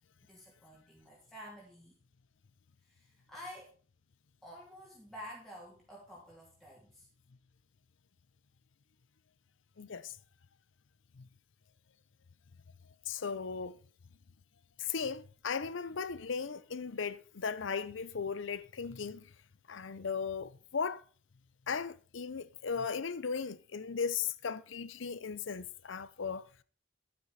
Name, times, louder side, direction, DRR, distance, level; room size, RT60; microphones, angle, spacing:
voice 1, 0.2-2.0 2.8-3.7 4.4-7.1, equal, ahead, 2.8 m, -50 dB
voice 2, 9.8-10.1 11.2-11.3 13.1-13.8 14.8-19.3 19.7-21.0 21.7-26.6, left 6 dB, 85° left, 0.6 m, -37 dB
11.5 x 9.7 x 4.1 m
head